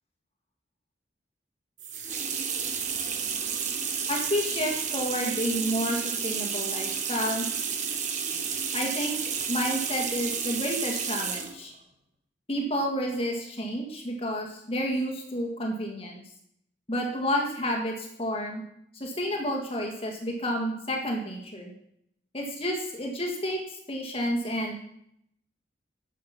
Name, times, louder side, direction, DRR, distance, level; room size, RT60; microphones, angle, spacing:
sound 1, 1.8-11.6, right 6 dB, 40° right, 1.2 m, -31 dB
voice 1, 4.1-7.5 8.7-9.2 9.5-11.7 12.5-16.2 16.9-18.6 18.9-21.7 22.3-24.8, equal, 30° left, 1 dB, 1.6 m, -30 dB
10.0 x 7.6 x 5.8 m, 0.73 s
head